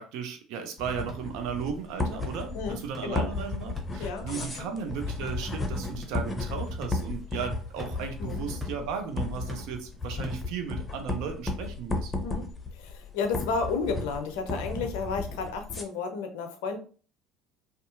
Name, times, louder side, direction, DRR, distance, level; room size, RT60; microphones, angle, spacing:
voice 1, 0.0-12.1, right 7 dB, 65° right, 6 dB, 0.5 m, -35 dB
sound 1, 0.8-15.8, left 3 dB, 20° left, 0.5 m, -34 dB
sound 2, 0.8-11.0, right 1 dB, 10° right, 0.9 m, -50 dB
voice 2, 2.5-3.3 4.0-4.7 8.2-8.4 12.2-16.8, left 4 dB, 70° left, 6 dB, 0.5 m, -32 dB
2.6 x 2.3 x 2.6 m, 0.40 s
hypercardioid pair, 65°, 0 cm